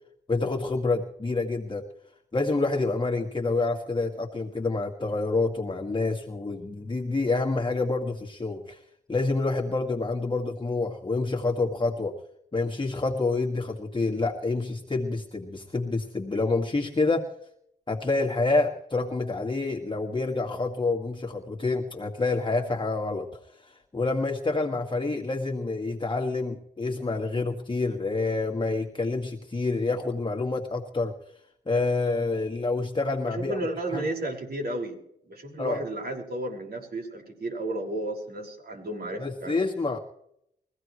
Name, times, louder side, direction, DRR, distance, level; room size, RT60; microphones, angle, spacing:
voice 1, 0.3-1.8 2.3-8.8 9.1-12.2 12.5-17.3 17.9-31.1 31.7-33.6 33.9-34.0 35.6-35.8 39.2-40.0, left 3 dB, 25° left, 0 dB, 1.8 m, -28 dB
voice 2, 33.3-35.0 35.3-39.6, right 1 dB, 55° right, 1 dB, 5.4 m, -33 dB
23.0 x 15.5 x 3.2 m, 0.75 s
cardioid pair, 60°, 19 cm